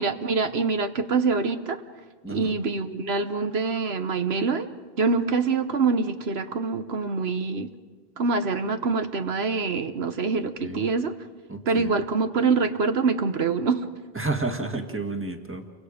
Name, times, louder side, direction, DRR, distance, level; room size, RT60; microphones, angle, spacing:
voice 1, 0.0-1.8 2.3-4.7 5.0-7.7 8.2-11.1 11.6-13.9, right 4 dB, 75° right, 8 dB, 1.3 m, -25 dB
voice 2, 11.5-11.9 14.1-15.6, right 2 dB, 10° right, 4 dB, 1.7 m, -30 dB
30.0 x 24.5 x 5.1 m, 1.4 s
omnidirectional pair, 1.1 m